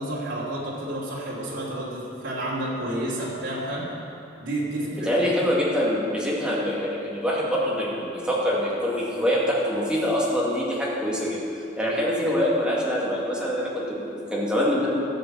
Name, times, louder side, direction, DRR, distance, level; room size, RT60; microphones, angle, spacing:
voice 1, 0.0-3.9 4.4-5.2 11.8-12.0, right 1 dB, 90° right, -6 dB, 2.9 m, -30 dB
voice 2, 5.1-11.4 11.8-15.0, equal, 5° right, -6 dB, 2.2 m, -25 dB
13.5 x 7.7 x 7.4 m, 2.7 s
head